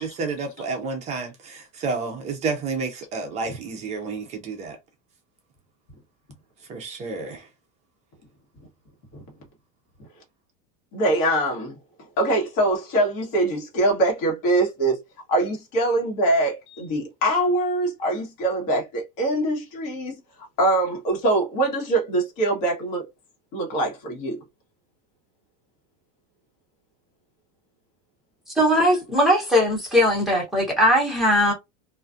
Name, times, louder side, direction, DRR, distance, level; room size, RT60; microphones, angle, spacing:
voice 1, 0.0-4.8 6.7-7.5, right 4 dB, 20° right, 0.3 m, -30 dB
voice 2, 10.9-11.7 12.2-15.0 15.3-20.2 20.6-23.0 23.5-24.4, right 1 dB, 50° left, 1.3 m, -23 dB
voice 3, 28.6-31.5, equal, ahead, 0.8 m, -19 dB
2.4 x 2.3 x 2.5 m
supercardioid pair, 160°, 37 cm